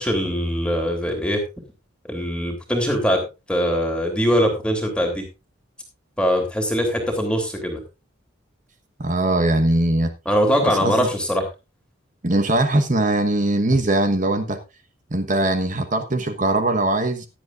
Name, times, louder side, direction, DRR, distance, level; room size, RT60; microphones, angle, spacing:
voice 1, 0.0-1.4 2.1-3.2 3.5-5.2 6.2-7.8 10.2-11.5, equal, 5° left, 2 dB, 3.0 m, -22 dB
voice 2, 9.0-10.1 10.6-11.1 12.2-14.6 15.1-17.3, right 1 dB, 40° right, 8 dB, 1.2 m, -21 dB
16.5 x 11.0 x 2.5 m, 0.27 s
head